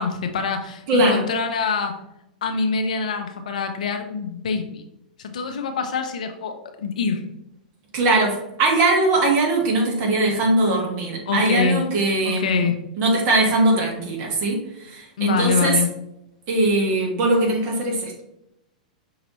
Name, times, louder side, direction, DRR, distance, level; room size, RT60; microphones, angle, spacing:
voice 1, 0.0-2.0 2.4-4.8 5.2-7.2 11.3-12.0 12.2-12.8 15.2-15.9, left 5 dB, 65° left, 6 dB, 0.6 m, -25 dB
voice 2, 0.9-1.2 7.9-12.7 13.0-15.8 16.5-18.2, right 2 dB, 40° right, 0 dB, 1.4 m, -20 dB
5.4 x 2.9 x 3.0 m, 0.83 s
figure-of-eight pair, 100°, 4 cm